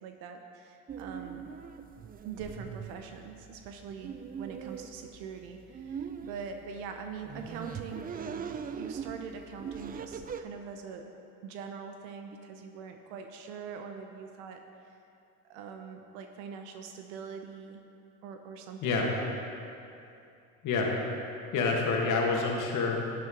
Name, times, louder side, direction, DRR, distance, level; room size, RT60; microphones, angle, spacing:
voice 1, 0.0-1.5 2.2-11.1 11.4-14.6 15.5-17.8 18.2-19.3, right 6 dB, 80° right, 5 dB, 0.8 m, -43 dB
sound 1, 0.9-10.4, right 7 dB, 25° right, 0.4 m, -42 dB
voice 2, 18.8-19.1 20.6-20.9 21.5-23.0, left 4 dB, 55° left, -1 dB, 1.7 m, -27 dB
11.0 x 7.8 x 3.8 m, 2.6 s
supercardioid pair, 90°, 37 cm